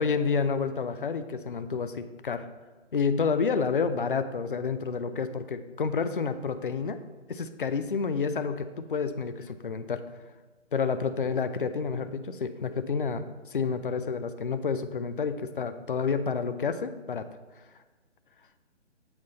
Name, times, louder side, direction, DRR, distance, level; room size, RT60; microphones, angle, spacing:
voice 1, 0.0-2.5 2.9-7.0 7.3-10.0 10.7-17.3, left 5 dB, 50° left, 10 dB, 0.5 m, -29 dB
7.7 x 5.8 x 3.9 m, 1.3 s
figure-of-eight pair, 145°, 36 cm